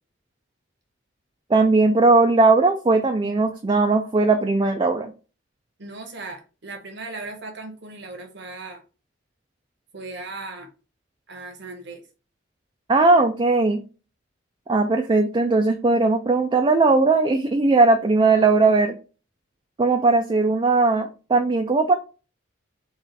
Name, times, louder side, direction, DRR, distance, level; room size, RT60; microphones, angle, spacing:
voice 1, 1.5-5.1 12.9-13.8 14.7-19.0 19.8-21.9, right 3 dB, 25° right, 0.3 m, -18 dB
voice 2, 5.8-8.8 9.9-10.7 11.3-12.0, right 3 dB, 60° right, 1.0 m, -37 dB
4.0 x 2.4 x 4.0 m
head